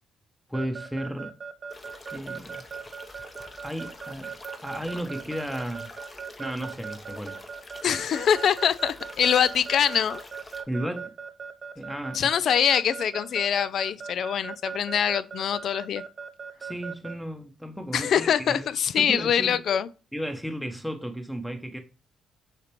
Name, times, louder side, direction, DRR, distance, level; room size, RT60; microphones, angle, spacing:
voice 1, 0.5-1.3 2.1-2.6 3.6-4.4 4.6-5.9 6.4-7.5 10.7-11.1 11.8-12.3 16.6-18.7 19.0-19.6 20.1-21.8, equal, ahead, 0.8 m, -34 dB
Keyboard (musical) / Alarm, 0.5-17.1, right 6 dB, 45° right, 0.6 m, -38 dB
sound 1, 1.7-10.6, left 2 dB, 30° left, 0.8 m, -46 dB
voice 2, 7.8-10.2 12.1-16.0 17.9-19.9, left 8 dB, 65° left, 0.3 m, -24 dB
6.4 x 2.5 x 3.0 m
supercardioid pair, 60°, 0 cm